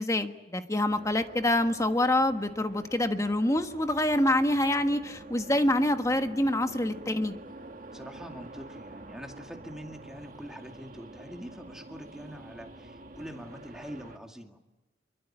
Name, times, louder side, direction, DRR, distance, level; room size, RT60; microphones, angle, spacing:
voice 1, 0.0-7.3, left 1 dB, 15° left, 8 dB, 1.3 m, -26 dB
sound 1, 0.9-14.2, right 2 dB, 45° right, 1.7 m, -47 dB
voice 2, 7.9-14.6, equal, 5° right, 3 dB, 2.2 m, -44 dB
26.0 x 23.0 x 8.9 m, 1.0 s
head